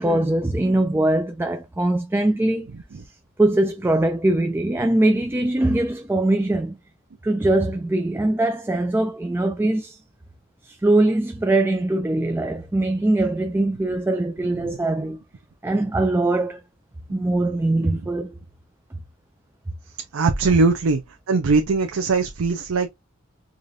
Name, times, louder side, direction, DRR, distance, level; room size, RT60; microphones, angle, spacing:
voice 1, 0.0-2.7 3.4-6.8 7.2-10.0 10.6-15.2 15.6-16.6 17.1-18.3, right 2 dB, 10° right, 0.3 m, -22 dB
voice 2, 20.1-21.0 21.3-22.9, right 4 dB, 80° right, 0.5 m, -20 dB
4.8 x 2.5 x 2.6 m
head